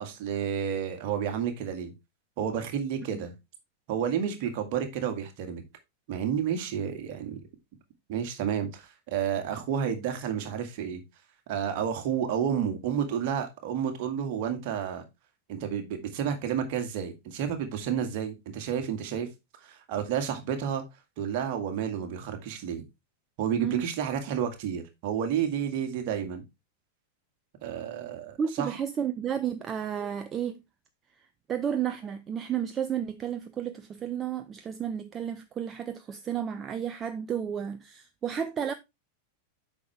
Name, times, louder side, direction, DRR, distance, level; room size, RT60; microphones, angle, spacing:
voice 1, 0.0-1.9 2.4-3.3 3.9-5.6 6.1-7.4 8.1-11.0 11.5-15.0 15.5-19.3 19.6-20.8 21.2-22.8 23.4-26.4 27.6-28.7, right 8 dB, 45° right, 2.0 m, -30 dB
voice 2, 28.4-30.6 31.2-38.7, right 8 dB, 25° right, 0.6 m, -32 dB
8.4 x 5.9 x 3.4 m
figure-of-eight pair, 90°, 0 cm